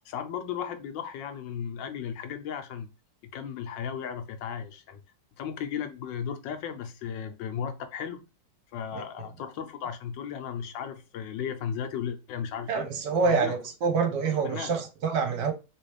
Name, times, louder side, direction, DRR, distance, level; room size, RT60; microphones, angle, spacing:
voice 1, 0.1-2.9 3.3-5.0 5.4-8.2 8.7-12.9 13.2-13.5 14.4-14.7, left 8 dB, 80° left, 1.3 m, -35 dB
voice 2, 12.7-15.5, right 5 dB, 70° right, 1.2 m, -26 dB
3.2 x 3.0 x 3.1 m
omnidirectional pair, 2.1 m